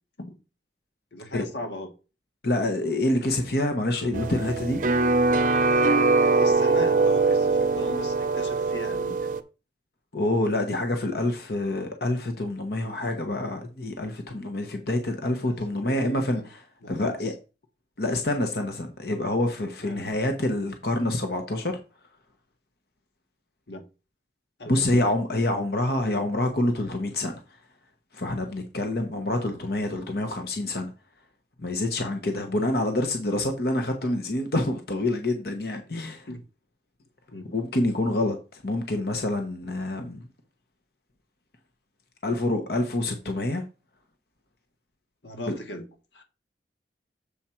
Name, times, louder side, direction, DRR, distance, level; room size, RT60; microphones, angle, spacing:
voice 1, 1.1-1.9 5.6-9.3 15.4-16.5 16.8-17.3 19.8-20.1 23.7-23.8 24.6-25.1 36.3-36.4 37.3-37.5 42.3-42.4 45.2-45.8 46.1-46.2, left 1 dB, 85° left, 1.4 m, -39 dB
voice 2, 2.4-4.8 10.1-16.4 16.9-17.3 18.0-21.7 24.7-27.4 28.1-30.9 31.6-36.3 37.5-40.3 42.2-43.6 45.5-45.6, left 1 dB, 60° left, 1.0 m, -27 dB
sound 1, 4.1-9.4, right 3 dB, 50° right, 0.6 m, -22 dB
7.2 x 5.0 x 4.4 m
head